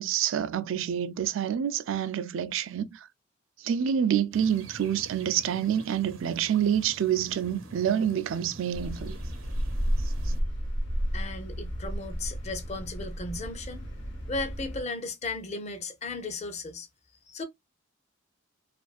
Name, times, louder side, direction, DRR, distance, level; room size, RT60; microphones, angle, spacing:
voice 1, 0.0-3.1 3.6-9.2 10.3-10.4, right 9 dB, 70° right, 0.3 m, -27 dB
sound 1, 4.3-10.4, right 2 dB, 85° right, 0.8 m, -47 dB
sound 2, 8.7-14.8, equal, 65° left, 1.0 m, -32 dB
voice 2, 11.1-13.8 14.3-16.9 17.3-17.4, left 3 dB, 35° left, 0.5 m, -35 dB
2.5 x 2.3 x 2.3 m
head